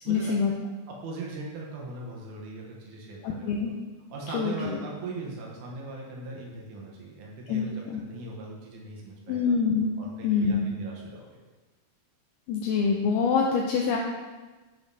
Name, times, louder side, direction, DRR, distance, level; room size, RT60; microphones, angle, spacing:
voice 1, 0.1-0.5 3.2-3.7 4.3-4.8 7.5-8.0 9.3-9.9 10.2-10.7 12.5-14.0, left 5 dB, 85° left, 0 dB, 2.3 m, -25 dB
voice 2, 1.0-3.7 4.1-7.7 8.1-9.5 10.0-11.4, right 3 dB, 75° right, -2 dB, 1.8 m, -40 dB
9.2 x 5.1 x 2.7 m, 1.2 s
omnidirectional pair, 4.8 m